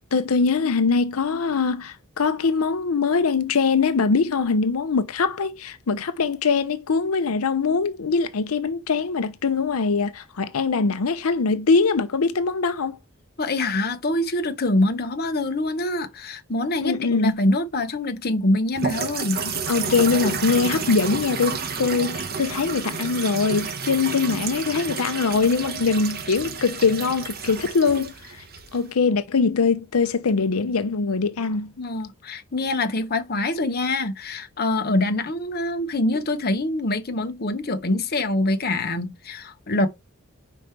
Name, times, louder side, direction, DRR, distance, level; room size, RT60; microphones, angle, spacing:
voice 1, 0.1-13.0 16.8-17.4 19.4-28.4 28.7-31.7, left 4 dB, 90° left, 0.6 m, -22 dB
voice 2, 13.4-19.4 31.8-39.9, left 2 dB, 45° left, 0.9 m, -25 dB
sound 1, 18.8-28.9, right 5 dB, 45° right, 1.3 m, -30 dB
5.3 x 4.6 x 4.5 m
head